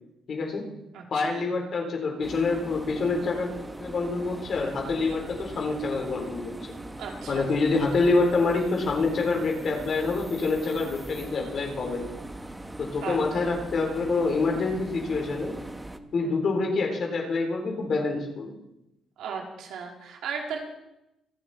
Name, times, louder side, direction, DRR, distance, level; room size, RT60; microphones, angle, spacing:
voice 1, 0.3-0.7 1.1-3.5 3.8-6.5 7.3-12.1 12.8-15.6 16.1-18.5, left 3 dB, 55° left, 1 dB, 4.4 m, -26 dB
voice 2, 0.9-1.4 7.0-7.4 13.0-13.2 16.2-16.3 19.2-20.6, right 6 dB, 85° right, 0 dB, 3.4 m, -35 dB
sound 1, 2.2-16.0, right 1 dB, 10° right, 1.2 m, -40 dB
26.0 x 9.2 x 4.5 m, 0.89 s
cardioid pair, 90°, 0 cm